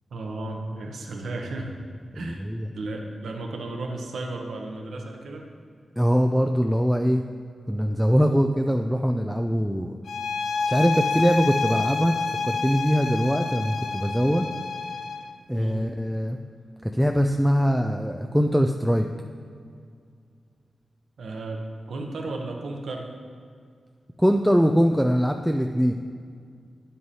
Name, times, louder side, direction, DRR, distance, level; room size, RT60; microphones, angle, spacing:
voice 1, 0.1-1.7 2.1-2.4 2.7-5.5 15.5-15.9 21.2-21.6 21.9-23.1, right 2 dB, 85° right, 2 dB, 0.9 m, -34 dB
voice 2, 2.1-2.7 6.0-7.2 7.7-9.9 10.7-12.2 12.4-14.4 15.5-16.4 16.8-19.1 24.2-25.9, equal, ahead, 4 dB, 0.3 m, -22 dB
sound 1, 10.1-15.3, left 4 dB, 85° left, 0.4 m, -28 dB
9.8 x 7.7 x 2.8 m, 2.2 s
wide cardioid pair, 105°, 0 cm